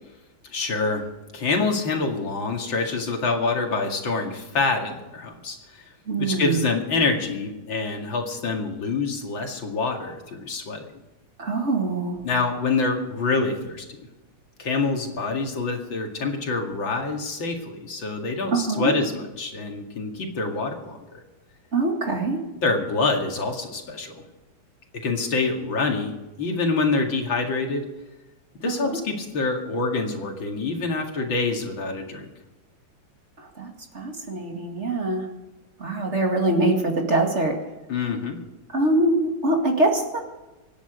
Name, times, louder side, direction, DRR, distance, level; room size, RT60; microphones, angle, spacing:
voice 1, 0.4-1.1 1.3-5.8 6.2-10.9 12.2-14.1 14.6-21.2 22.6-24.2 24.9-27.9 28.6-32.3 37.9-38.4, left 3 dB, 75° left, 2 dB, 3.0 m, -26 dB
voice 2, 6.1-6.6 11.4-12.2 18.5-18.9 21.7-22.4 28.7-29.0 33.4-35.3 35.8-37.6 38.7-40.2, right 2 dB, 35° right, 2 dB, 2.4 m, -24 dB
25.5 x 10.5 x 5.1 m, 1.1 s
omnidirectional pair, 2.1 m